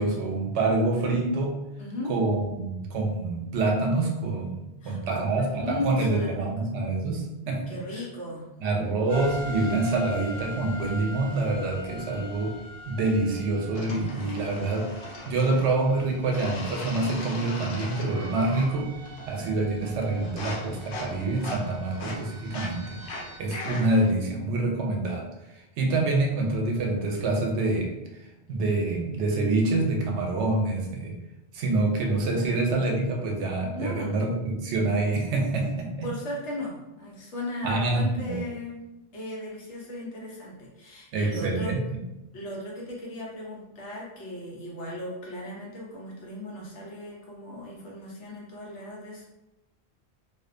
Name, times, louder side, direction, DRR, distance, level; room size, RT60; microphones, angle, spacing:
voice 1, 0.0-1.6 2.0-7.6 8.6-12.5 12.9-14.9 15.3-18.9 19.3-23.0 23.4-25.2 25.8-27.9 28.5-31.2 31.5-36.1 37.6-38.4 41.1-41.8, right 2 dB, 85° right, 1 dB, 0.9 m, -26 dB
voice 2, 1.8-2.1 4.8-6.4 7.7-9.0 33.7-34.2 36.0-38.8 39.1-41.7 42.3-49.2, left 1 dB, 85° left, -3 dB, 1.1 m, -36 dB
sound 1, 9.1-23.4, left 1 dB, 40° right, 0.6 m, -43 dB
sound 2, 13.7-15.8 16.3-18.8 19.0-19.5 19.8-24.1, left 2 dB, 60° left, 0.7 m, -39 dB
2.6 x 2.1 x 2.5 m, 0.96 s
omnidirectional pair, 1.1 m